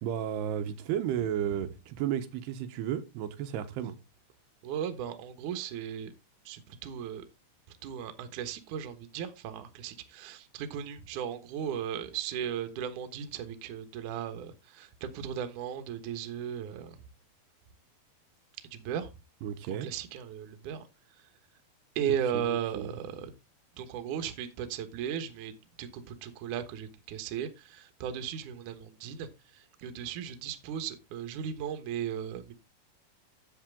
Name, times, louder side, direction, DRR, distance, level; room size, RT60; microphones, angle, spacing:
voice 1, 0.0-3.9 19.4-19.9 22.3-23.0, right 10 dB, 80° right, 3.0 m, -33 dB
voice 2, 4.6-6.1 6.5-7.2 7.8-17.0 18.7-19.1 19.8-20.8 22.0-23.3 23.8-29.3 29.8-32.5, right 9 dB, 65° right, 2.4 m, -36 dB
10.5 x 8.0 x 3.7 m
omnidirectional pair, 4.7 m